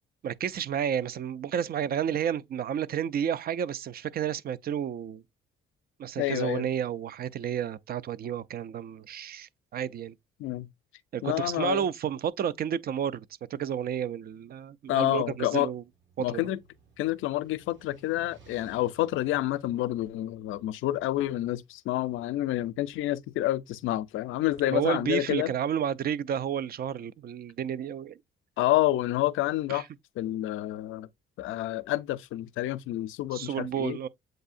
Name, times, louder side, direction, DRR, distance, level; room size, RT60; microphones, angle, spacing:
voice 1, 0.2-5.2 6.0-10.1 11.1-13.2 13.5-15.8 16.2-16.4 24.7-28.2 29.7-29.8 33.3-34.1, right 9 dB, 50° right, 0.4 m, -31 dB
voice 2, 6.2-6.7 10.4-10.7 11.2-11.9 14.9-15.7 16.2-16.6 17.0-25.5 28.6-29.8 30.2-31.1 31.4-34.0, left 15 dB, 85° left, 0.5 m, -28 dB
sound 1, 15.5-21.3, right 1 dB, 70° right, 2.0 m, -59 dB
7.7 x 2.7 x 2.5 m
cardioid pair, 90°, 20 cm